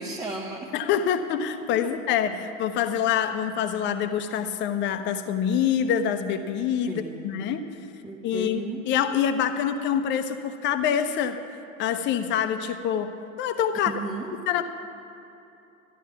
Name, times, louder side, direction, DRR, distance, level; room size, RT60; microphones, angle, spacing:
voice 1, 0.0-0.7 1.8-2.0 6.9-7.6 8.0-8.8 13.9-14.3, right 3 dB, 10° right, -2 dB, 0.9 m, -35 dB
voice 2, 0.7-7.7 8.2-8.6 8.9-11.4 11.8-13.1 13.4-13.9 14.5-14.6, left 8 dB, 25° left, 9 dB, 0.8 m, -25 dB
14.0 x 11.0 x 5.8 m, 2.8 s
figure-of-eight pair, 90°, 42 cm